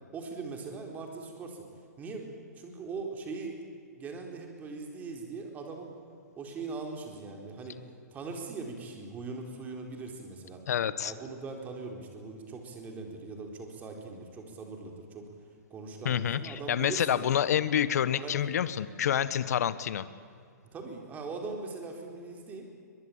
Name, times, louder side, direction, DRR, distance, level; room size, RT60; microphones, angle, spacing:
voice 1, 0.1-1.6 2.0-2.3 2.5-3.6 3.9-5.9 6.4-7.8 8.1-10.6 11.0-15.3 15.7-17.3 18.2-18.4 20.7-22.7, right 4 dB, 15° right, 2 dB, 4.1 m, -40 dB
voice 2, 10.7-11.1 16.0-20.1, left 9 dB, 65° left, 15 dB, 1.2 m, -28 dB
22.5 x 22.5 x 8.7 m, 2.4 s
hypercardioid pair, 150°, 9 cm